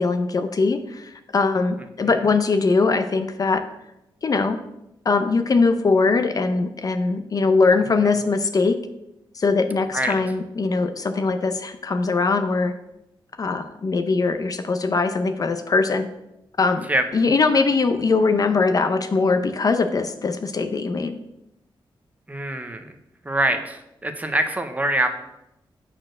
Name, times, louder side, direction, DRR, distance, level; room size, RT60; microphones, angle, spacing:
voice 1, 0.0-3.6 4.2-4.6 5.1-8.8 9.4-12.7 13.4-16.1 16.6-21.2, left 4 dB, 45° left, 8 dB, 0.6 m, -21 dB
voice 2, 22.3-22.9 23.2-25.1, right 1 dB, 15° right, 7 dB, 0.8 m, -24 dB
8.5 x 4.4 x 6.3 m, 0.86 s
wide cardioid pair, 140°, 9 cm